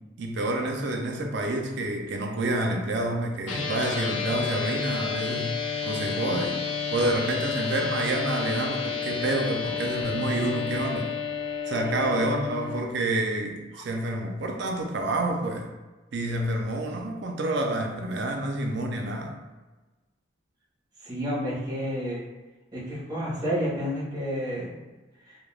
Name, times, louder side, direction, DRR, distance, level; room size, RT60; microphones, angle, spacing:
voice 1, 0.2-5.6 5.8-6.6 6.9-11.1 11.7-15.7 16.1-19.4, right 1 dB, 60° right, 2 dB, 0.4 m, -28 dB
sound 1, 3.5-12.8, left 6 dB, 85° left, 0.4 m, -31 dB
voice 2, 21.0-22.2 22.7-24.7 25.2-25.4, equal, 20° right, -8 dB, 0.9 m, -30 dB
2.3 x 2.1 x 3.1 m, 1.1 s
head